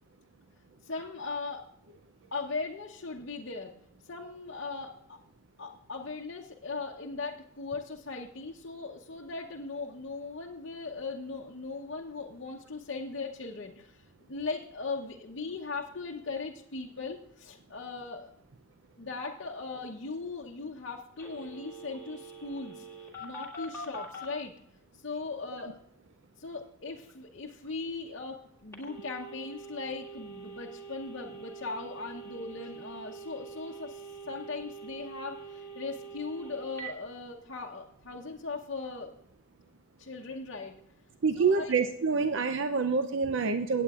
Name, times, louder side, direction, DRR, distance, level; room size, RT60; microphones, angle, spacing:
voice 1, 0.8-1.6 2.3-3.7 4.1-5.2 5.6-18.3 19.0-22.9 23.2-24.5 24.9-25.8 26.4-39.1 40.0-40.8 41.3-41.8, left 4 dB, 60° left, -2 dB, 0.9 m, -39 dB
Telephone, 21.2-24.3 28.7-36.9, right 3 dB, 15° left, 1.8 m, -45 dB
voice 2, 41.2-43.8, right 5 dB, 70° right, 8 dB, 0.5 m, -27 dB
17.0 x 8.6 x 2.4 m, 0.75 s
head